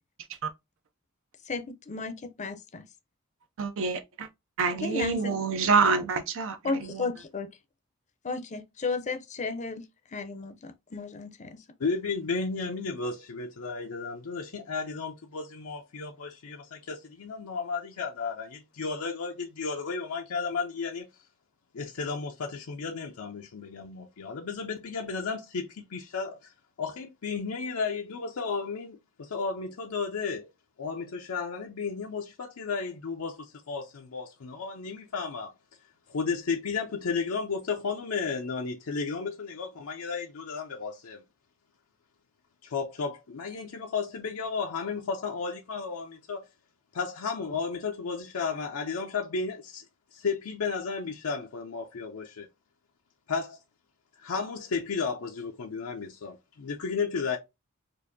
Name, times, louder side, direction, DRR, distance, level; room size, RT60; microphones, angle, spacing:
voice 1, 1.5-2.8 4.8-5.4 6.6-7.5 8.2-9.8 10.1-11.6, left 4 dB, 35° left, 0.5 m, -34 dB
voice 2, 3.6-4.3 4.6-7.1, right 5 dB, 65° right, 0.5 m, -27 dB
voice 3, 11.8-21.1 21.7-30.5 30.8-35.5 36.1-41.2 42.6-46.5 46.9-49.9 50.1-52.5 53.3-53.6 54.2-57.4, left 5 dB, 80° left, 0.5 m, -33 dB
4.5 x 2.5 x 2.6 m
head